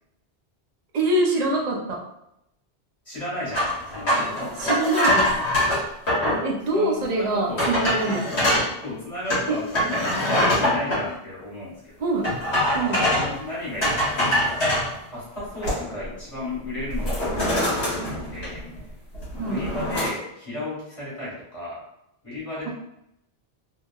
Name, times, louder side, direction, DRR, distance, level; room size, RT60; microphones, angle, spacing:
voice 1, 0.9-2.0 4.6-5.3 6.4-8.5 9.5-9.6 12.0-12.3 12.7-13.1 19.4-19.7, right 2 dB, 50° right, 0 dB, 0.6 m, -24 dB
voice 2, 3.0-4.8 6.4-8.2 8.8-12.2 13.1-18.6 19.3-21.8 22.2-22.7, left 1 dB, 30° left, -7 dB, 1.4 m, -34 dB
sound 1, 3.5-6.4 7.0-7.1 7.6-8.7 9.3-11.0 12.2-13.4 13.8-14.9 15.4-16.1 16.4-16.6 16.9-18.8 19.1-20.1, left 1 dB, 90° left, 1.4 m, -23 dB
2.9 x 2.8 x 2.3 m, 0.80 s
omnidirectional pair, 1.1 m